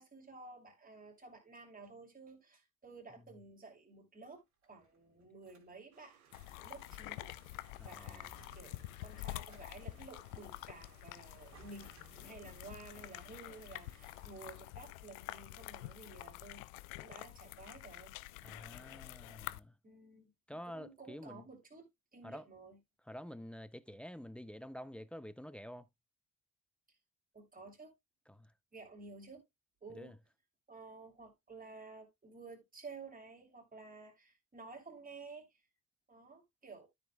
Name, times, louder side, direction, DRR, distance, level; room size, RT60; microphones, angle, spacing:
voice 1, 0.0-6.2 6.6-7.3 7.8-16.7 16.9-18.1 19.8-22.8 27.3-27.9 28.7-29.4 29.8-30.2 30.7-35.6 36.1-36.9, right 3 dB, 20° right, 3.0 m, -53 dB
sound 1, 4.4-5.7 6.1-6.7 7.1-7.6 8.0-10.1 11.1-11.2 11.5-12.7, right 3 dB, 40° right, 2.9 m, -64 dB
sound 2, 5.9-14.6, right 8 dB, 80° right, 1.1 m, -67 dB
sound 3, 6.3-19.6, left 18 dB, 70° left, 0.5 m, -48 dB
voice 2, 7.8-8.3 18.4-19.7 20.5-21.4 22.2-22.4 23.1-25.9 28.3-28.5 29.9-30.1, equal, 5° left, 0.5 m, -48 dB
13.0 x 5.2 x 2.2 m
figure-of-eight pair, 50°, 42 cm